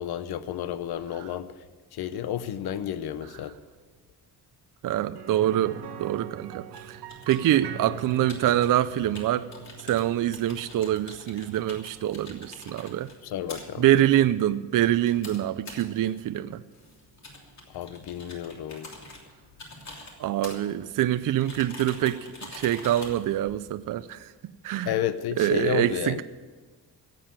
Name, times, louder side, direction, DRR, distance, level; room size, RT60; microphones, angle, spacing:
voice 1, 0.0-1.6 1.9-3.6 13.2-13.8 17.7-18.9 24.9-26.2, left 10 dB, 70° left, 0.8 m, -31 dB
voice 2, 4.8-7.0 7.3-9.5 9.8-13.1 13.8-16.6 20.2-24.3 24.6-24.9 25.4-26.2, right 12 dB, 55° right, 0.5 m, -25 dB
sound 1, 5.1-14.9 15.2-15.3 17.8-17.9, right 7 dB, 80° right, 1.3 m, -43 dB
sound 2, 6.7-24.2, left 2 dB, 45° left, 3.1 m, -46 dB
16.5 x 7.8 x 8.8 m
cardioid pair, 130°, 40 cm